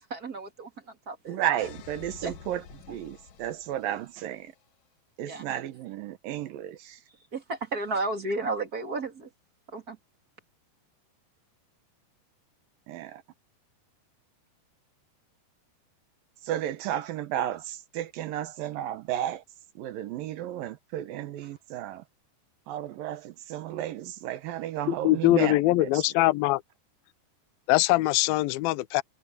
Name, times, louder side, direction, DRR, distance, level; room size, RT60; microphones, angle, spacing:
voice 1, 0.0-1.4 2.2-2.3 5.3-5.6 7.3-9.3 9.7-10.0, right 3 dB, 30° right, 1.8 m, -33 dB
voice 2, 1.3-4.5 5.2-7.0 12.9-13.2 16.4-19.4 19.8-22.0 22.7-26.1, right 12 dB, 70° right, 2.4 m, -33 dB
sound 1, 1.6-4.5, left 8 dB, 65° left, 1.9 m, -49 dB
voice 3, 25.0-26.6 27.7-29.0, left 17 dB, 85° left, 2.1 m, -22 dB
omnidirectional pair, 5.0 m